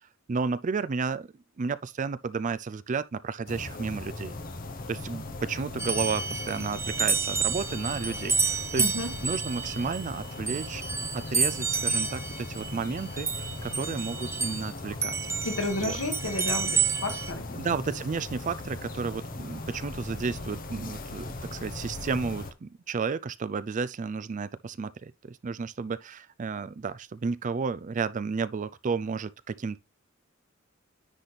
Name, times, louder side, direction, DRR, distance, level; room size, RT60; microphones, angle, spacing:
voice 1, 0.3-1.3 1.6-4.4 4.9-8.9 9.2-10.8 11.1-15.2 15.8-16.0 17.5-29.8, right 5 dB, 40° right, 0.4 m, -32 dB
sound 1, 3.5-22.5, left 2 dB, 45° left, 1.0 m, -39 dB
sound 2, 5.8-14.7 15.0-17.3, right 5 dB, 15° right, 0.8 m, -30 dB
voice 2, 8.7-9.1 15.4-17.6, left 2 dB, 80° left, 1.7 m, -32 dB
9.9 x 4.1 x 3.3 m
head